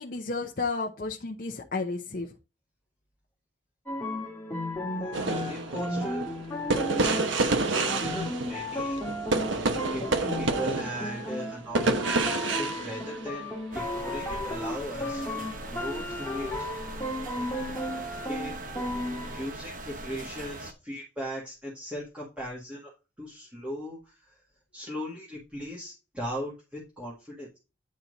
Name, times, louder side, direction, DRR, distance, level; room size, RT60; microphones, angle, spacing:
voice 1, 0.0-2.3, left 3 dB, 45° left, 1 dB, 0.7 m, -32 dB
sound 1, 3.9-19.5, left 1 dB, 10° left, 1.8 m, -34 dB
sound 2, 5.1-13.6 14.3-14.5, right 3 dB, 75° right, 1.0 m, -29 dB
voice 2, 5.5-6.4 7.0-7.5 7.8-9.0 9.3-13.5 13.7-15.3 15.6-16.7 18.3-18.5 19.2-22.9 23.2-24.4 24.7-27.6, equal, 5° right, -6 dB, 1.7 m, -38 dB
sound 3, 13.7-20.7, right 2 dB, 45° right, 0.9 m, -40 dB
9.5 x 4.3 x 4.0 m, 0.29 s
head